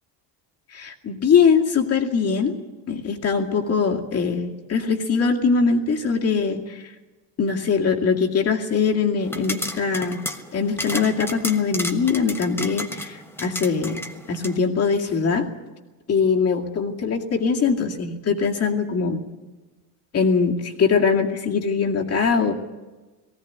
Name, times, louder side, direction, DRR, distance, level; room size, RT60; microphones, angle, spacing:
voice 1, 0.7-2.5 2.9-6.8 7.4-10.2 10.5-14.0 14.3-15.5 16.1-19.2 20.1-22.5, left 5 dB, 35° left, 1 dB, 2.3 m, -22 dB
sound 1, 9.2-14.6, left 1 dB, 5° left, 1.2 m, -33 dB
19.5 x 16.5 x 9.4 m, 1.2 s
cardioid pair, 145°, 42 cm